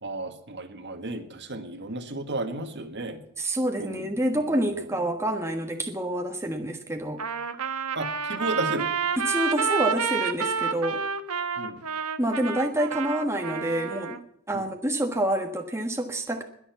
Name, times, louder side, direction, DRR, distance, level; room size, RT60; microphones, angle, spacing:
voice 1, 0.0-3.2 3.8-5.0 7.9-8.9 11.6-11.8 14.5-14.7, right 2 dB, 50° right, 7 dB, 1.9 m, -34 dB
voice 2, 3.4-7.2 9.2-11.0 12.2-14.2 14.5-16.4, right 1 dB, 10° right, 4 dB, 1.4 m, -27 dB
Trumpet, 7.2-14.2, right 6 dB, 85° right, 1.3 m, -29 dB
21.0 x 7.2 x 7.1 m, 0.71 s
head